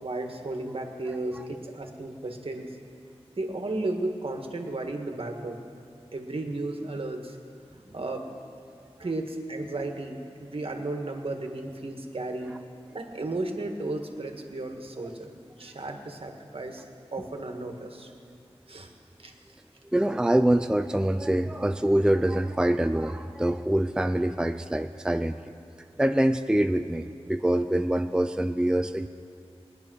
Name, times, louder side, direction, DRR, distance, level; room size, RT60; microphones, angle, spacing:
voice 1, 0.0-2.8 3.4-5.6 6.1-7.4 7.9-8.3 9.0-12.6 12.9-15.3 15.6-16.8 17.1-18.1 18.7-18.9 19.2-19.3, right 2 dB, 60° right, 3 dB, 1.7 m, -34 dB
voice 2, 19.9-25.4 26.0-29.1, right 1 dB, 5° right, 8 dB, 0.5 m, -25 dB
20.0 x 10.0 x 6.3 m, 2.4 s
wide cardioid pair, 60°, 11 cm